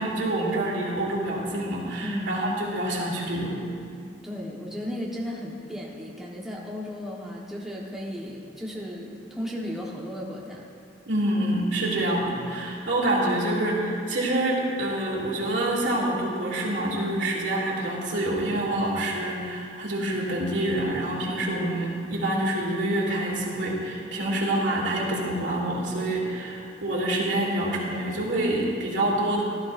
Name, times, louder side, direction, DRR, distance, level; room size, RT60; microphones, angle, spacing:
voice 1, 0.0-3.7 11.1-29.4, right 1 dB, 85° right, -4 dB, 2.7 m, -27 dB
voice 2, 2.0-2.3 4.2-10.6, equal, ahead, -4 dB, 1.3 m, -35 dB
16.5 x 12.5 x 2.6 m, 2.4 s
head